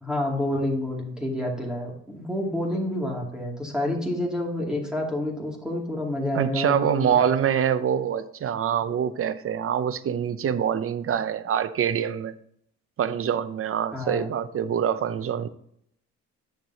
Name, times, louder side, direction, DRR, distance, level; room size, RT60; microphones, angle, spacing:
voice 1, 0.0-7.3 13.9-14.3, left 1 dB, ahead, -2 dB, 2.5 m, -28 dB
voice 2, 6.3-12.3 13.0-15.5, right 8 dB, 50° right, 14 dB, 0.7 m, -25 dB
9.4 x 6.8 x 2.8 m, 0.70 s
cardioid pair, 90°, 30 cm